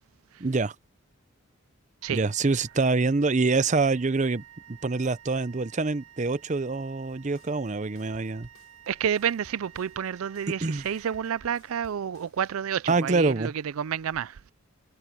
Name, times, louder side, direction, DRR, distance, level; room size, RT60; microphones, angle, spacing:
voice 1, 0.4-0.7 2.1-8.5 10.6-10.9 12.9-13.5, right 3 dB, 35° right, 0.6 m, -25 dB
Wind instrument woodwind instrument, 2.0-12.1, right 11 dB, 60° right, 3.8 m, -53 dB
sound 1, 7.1-12.5, left 2 dB, 80° left, 5.9 m, -58 dB
voice 2, 8.9-14.4, right 8 dB, 85° right, 0.4 m, -30 dB
head